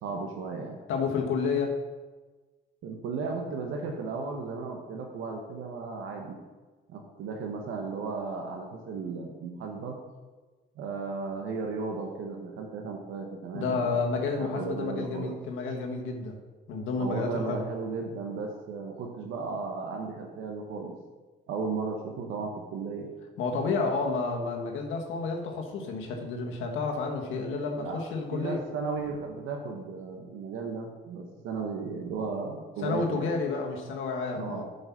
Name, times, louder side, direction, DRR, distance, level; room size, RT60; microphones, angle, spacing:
voice 1, 0.0-0.8 2.8-6.4 6.9-10.0 10.8-13.9 14.4-15.3 17.0-20.9 21.5-23.1 27.5-28.0 28.3-33.3 34.3-34.6, right 4 dB, 90° right, 2 dB, 1.1 m, -35 dB
voice 2, 0.9-1.8 13.5-16.4 16.7-17.6 23.4-28.6 32.8-34.6, left 4 dB, 85° left, 2 dB, 1.4 m, -30 dB
7.8 x 5.5 x 5.8 m, 1.3 s
cardioid pair, 90°, 20 cm